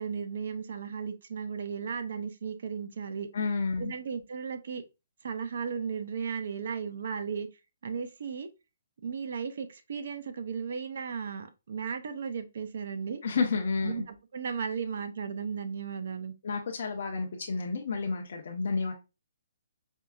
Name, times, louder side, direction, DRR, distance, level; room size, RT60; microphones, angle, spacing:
voice 1, 0.0-3.3 3.8-4.8 5.2-7.5 7.8-8.5 9.0-13.2 13.8-16.3, right 6 dB, 50° right, 0.5 m, -35 dB
voice 2, 3.3-3.9 13.2-14.0 16.4-18.9, left 4 dB, 50° left, 0.6 m, -30 dB
4.4 x 2.5 x 2.3 m
hypercardioid pair, 180°, 0 cm